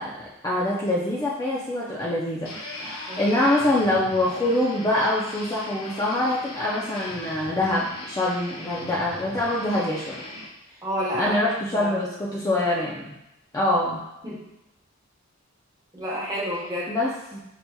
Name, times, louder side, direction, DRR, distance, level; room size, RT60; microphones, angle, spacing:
voice 1, 0.0-10.2 11.1-13.1 13.5-14.0 16.9-17.4, left 1 dB, 15° left, -5 dB, 0.4 m, -25 dB
sound 1, 2.5-10.5, left 2 dB, 85° left, 0.8 m, -39 dB
voice 2, 10.8-11.3 11.7-12.0 14.2-14.4 15.9-16.9, equal, 20° right, -6 dB, 1.1 m, -29 dB
5.6 x 2.8 x 2.2 m, 0.89 s
head